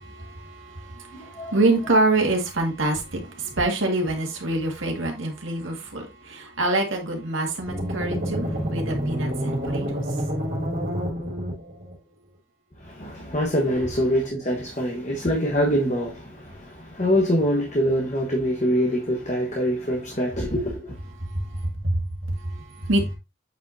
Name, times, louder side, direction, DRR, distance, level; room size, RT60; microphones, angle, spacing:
voice 1, 0.1-10.2 21.2-23.1, right 2 dB, 90° right, 2.0 m, -26 dB
voice 2, 1.1-1.5 12.8-21.0, equal, 35° left, 1.3 m, -24 dB
sound 1, 7.7-11.9, equal, 50° right, 3.2 m, -28 dB
8.0 x 5.1 x 2.7 m
head